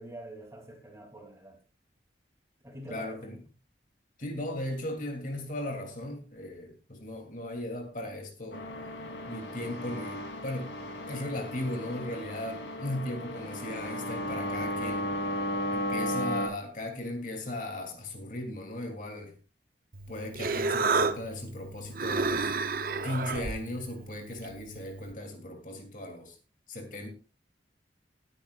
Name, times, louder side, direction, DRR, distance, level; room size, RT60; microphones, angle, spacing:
voice 1, 0.0-1.6 2.6-3.3, right 1 dB, 15° right, 2.7 m, -45 dB
voice 2, 2.9-3.4 4.2-8.6 9.3-10.7 11.1-15.1 15.7-19.3 20.1-22.5 23.0-26.3 26.7-27.1, left 1 dB, 45° left, 2.9 m, -37 dB
sound 1, 8.5-16.5, left 1 dB, 85° left, 3.1 m, -35 dB
Human voice, 19.9-25.1, right 4 dB, 50° right, 0.8 m, -32 dB
19.0 x 10.0 x 2.4 m
head